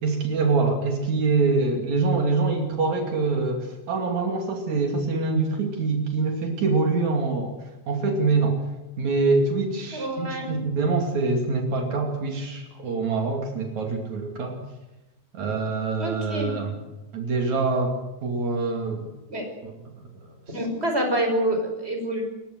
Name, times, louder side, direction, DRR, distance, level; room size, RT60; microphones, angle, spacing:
voice 1, 0.0-7.6 7.9-8.6 9.0-14.6 15.3-16.8 17.1-19.1 19.6-19.7 20.2-20.6, right 3 dB, 70° right, 3 dB, 4.0 m, -25 dB
voice 2, 9.9-10.5 16.0-16.5 19.3-19.6 20.5-22.2, right 1 dB, 20° right, 4 dB, 5.8 m, -27 dB
28.0 x 16.0 x 7.9 m, 1.0 s
omnidirectional pair, 3.4 m